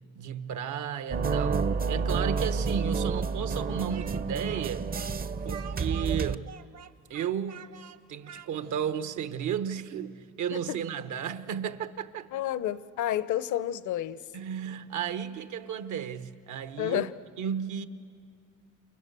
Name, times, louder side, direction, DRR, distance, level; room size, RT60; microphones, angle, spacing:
voice 1, 0.1-4.9 5.4-6.5 7.1-7.7 8.1-12.3 14.3-17.1 17.4-17.9, right 8 dB, 75° right, 1.1 m, -33 dB
sound 1, 1.1-6.4, right 4 dB, 30° right, 0.6 m, -29 dB
Speech, 3.9-9.0, right 8 dB, 60° right, 1.1 m, -47 dB
voice 2, 12.3-14.2 16.8-17.1, left 12 dB, 75° left, 0.8 m, -30 dB
28.5 x 28.0 x 6.9 m
cardioid pair, 90°, 30 cm